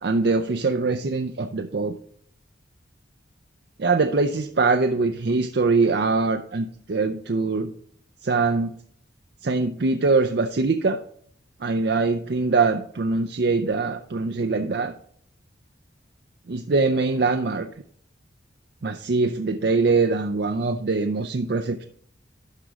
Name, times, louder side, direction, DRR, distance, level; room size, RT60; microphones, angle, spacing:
voice 1, 0.0-1.9 3.8-7.7 8.2-8.7 9.4-11.0 11.6-14.9 16.5-17.7 18.8-21.8, right 3 dB, 60° right, 8 dB, 0.5 m, -23 dB
12.0 x 4.9 x 4.0 m, 0.62 s
head